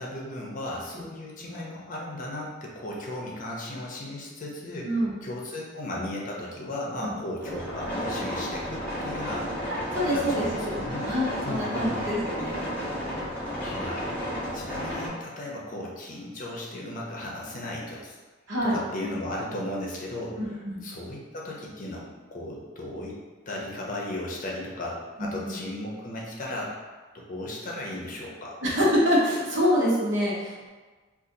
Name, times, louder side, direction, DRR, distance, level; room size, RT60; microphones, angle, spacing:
voice 1, 0.0-4.9 5.2-9.5 10.1-11.1 11.4-12.0 13.6-18.2 18.6-23.2 23.5-26.7 27.1-28.5, left 1 dB, 45° left, -3 dB, 0.6 m, -36 dB
voice 2, 4.8-5.1 7.0-7.2 9.9-10.8 11.1-12.7 18.5-18.8 20.4-20.8 25.2-25.6 28.6-30.5, equal, 70° right, -6 dB, 1.0 m, -26 dB
sound 1, 7.4-15.1, equal, 5° left, 0.7 m, -32 dB
2.7 x 2.4 x 3.8 m, 1.3 s
head